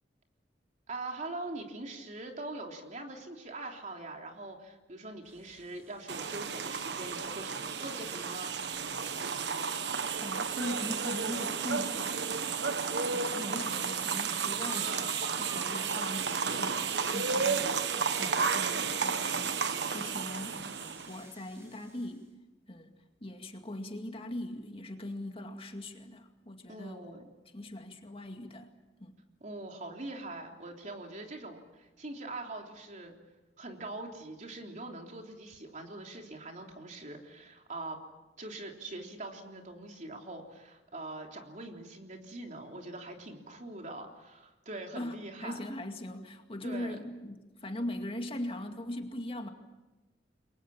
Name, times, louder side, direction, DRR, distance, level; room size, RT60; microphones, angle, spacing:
voice 1, 0.9-8.6 26.7-27.3 29.4-33.1 33.6-38.0 38.4-45.6 46.6-47.0, right 2 dB, 45° right, 2 dB, 3.5 m, -43 dB
sound 1, 5.2-22.2, equal, 15° right, 6.1 m, -55 dB
sound 2, 6.1-21.2, right 5 dB, 75° right, 1.2 m, -32 dB
voice 2, 10.2-12.3 13.1-19.6 19.9-20.6 21.1-22.2 22.7-22.9 23.2-27.2 27.5-28.7 29.0-29.1 45.0-49.5, left 1 dB, 35° left, 4 dB, 2.2 m, -40 dB
29.5 x 23.0 x 7.3 m, 1.1 s
head